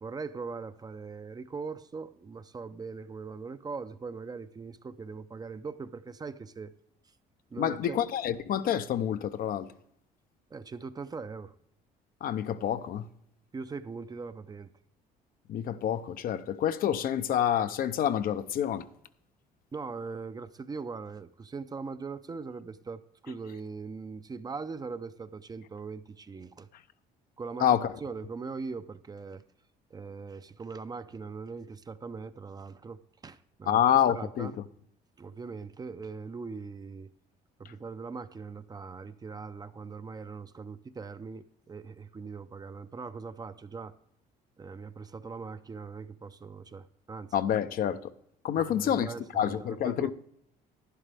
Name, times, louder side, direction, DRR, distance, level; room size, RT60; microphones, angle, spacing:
voice 1, 0.0-6.7 7.5-8.0 10.5-11.5 13.5-14.7 19.7-26.7 27.4-29.4 29.9-33.8 34.1-34.6 35.2-37.1 37.6-43.9 44.6-47.3 48.7-50.1, right 4 dB, 25° right, 0.5 m, -41 dB
voice 2, 7.6-9.7 12.2-13.1 15.5-18.9 27.6-27.9 33.7-34.5 47.3-48.1 48.4-50.1, left 10 dB, 60° left, 0.6 m, -28 dB
11.0 x 10.5 x 3.4 m
cardioid pair, 110°, 17 cm